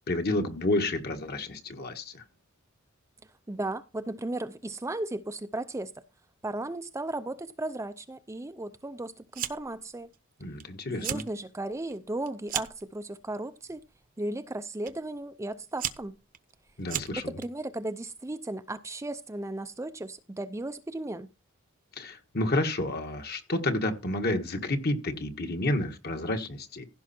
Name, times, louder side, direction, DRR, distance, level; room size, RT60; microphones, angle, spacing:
voice 1, 0.1-2.2 10.4-11.2 16.8-17.3 21.9-26.9, left 1 dB, 50° left, 1.7 m, -30 dB
voice 2, 3.5-5.9 6.4-10.1 10.9-13.8 14.2-16.2 17.2-21.3, right 2 dB, 15° right, 0.5 m, -35 dB
Fire, 9.3-9.8 10.1-10.6 10.9-11.3 11.7-12.9 13.6-14.0 14.9-15.0 15.5-17.5, right 9 dB, 45° right, 0.8 m, -35 dB
16.0 x 5.5 x 4.4 m
head